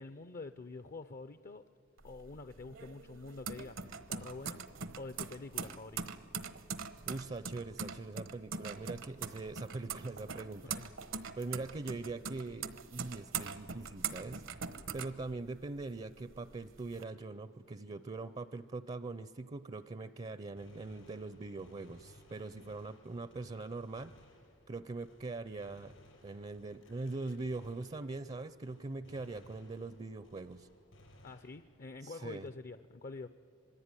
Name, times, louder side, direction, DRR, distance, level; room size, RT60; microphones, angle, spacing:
voice 1, 0.0-1.6 2.0-4.6 5.0-6.1 10.6-10.9 31.2-33.3, left 3 dB, 45° left, 11 dB, 0.6 m, -47 dB
sound 1, 2.0-15.8 16.2-17.0, right 6 dB, 80° right, 1.2 m, -42 dB
voice 2, 7.1-10.7 11.4-14.5 14.9-24.1 24.7-25.9 26.2-30.7 32.0-32.5, right 3 dB, 30° right, 13 dB, 0.5 m, -42 dB
Gunshot gunfire, 20.6-28.4 28.6-32.0, left 1 dB, 75° left, 5.0 m, -61 dB
26.0 x 20.5 x 9.8 m, 2.5 s
head